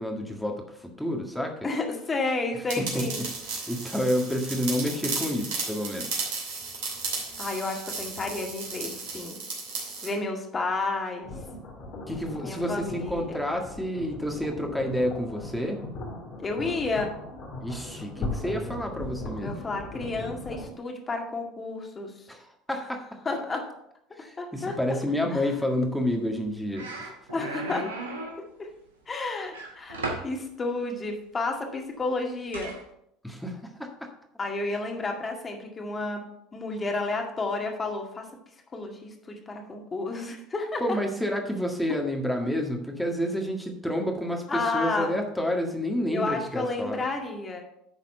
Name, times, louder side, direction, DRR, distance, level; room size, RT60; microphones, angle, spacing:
voice 1, 0.0-1.6 2.8-3.1 3.7-6.1 12.1-15.8 17.6-19.7 22.3-23.0 24.2-27.1 33.2-34.1 40.8-47.0, left 1 dB, ahead, 1 dB, 1.7 m, -29 dB
voice 2, 1.6-3.3 7.4-9.4 10.0-11.3 12.4-13.4 16.4-17.1 19.4-22.1 22.7-22.8 23.3-23.7 24.4-25.0 25.3-25.5 27.3-27.9 28.6-28.7 29.1-32.7 34.4-36.2 36.5-38.3 38.7-41.0 41.9-42.0 44.5-45.2 46.1-47.6, left 3 dB, 30° left, 2 dB, 2.0 m, -31 dB
sound 1, 2.7-10.1, right 4 dB, 65° right, 2.8 m, -34 dB
sound 2, 11.2-20.7, left 2 dB, 55° left, 2.3 m, -38 dB
sound 3, 26.3-26.4 26.7-28.4 29.5-30.3 32.5-32.8, right 2 dB, 90° right, 1.3 m, -35 dB
11.0 x 4.1 x 5.5 m, 0.76 s
hypercardioid pair, 75°, 0 cm